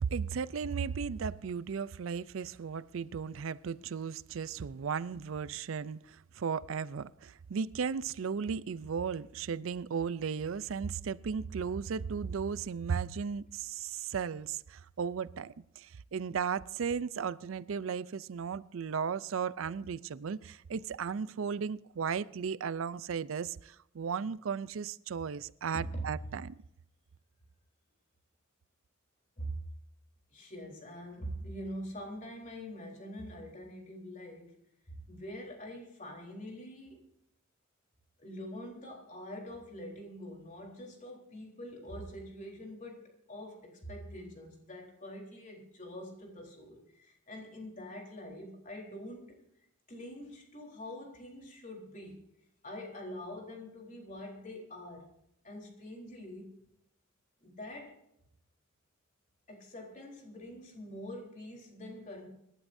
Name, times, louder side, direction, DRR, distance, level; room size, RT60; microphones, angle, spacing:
voice 1, 0.0-26.5, right 6 dB, 75° right, 0.4 m, -35 dB
voice 2, 25.7-26.1 29.4-29.6 30.3-34.6 34.9-37.0 38.2-49.4 49.9-52.2 52.6-55.1 55.4-56.5 57.4-58.0 59.5-62.3, equal, 40° left, 3.8 m, -44 dB
25.5 x 12.5 x 2.7 m
head